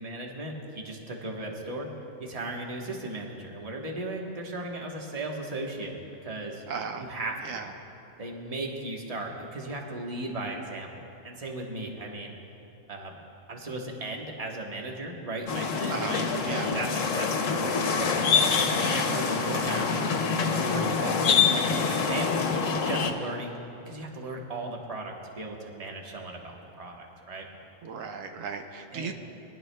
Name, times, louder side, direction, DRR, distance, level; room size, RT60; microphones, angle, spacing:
voice 1, 0.0-1.9 2.2-6.6 7.0-7.6 8.2-12.3 12.9-13.2 13.5-20.0 20.4-21.4 21.9-23.5 23.8-27.5 28.9-29.1, right 2 dB, 30° right, 0 dB, 1.2 m, -36 dB
voice 2, 6.7-7.0 7.4-7.7 15.9-16.2 16.5-16.7 27.8-29.1, right 6 dB, 90° right, 5 dB, 1.1 m, -35 dB
sound 1, 15.5-23.1, left 5 dB, 80° left, 1.2 m, -26 dB
22.0 x 11.0 x 2.2 m, 2.8 s
omnidirectional pair, 1.3 m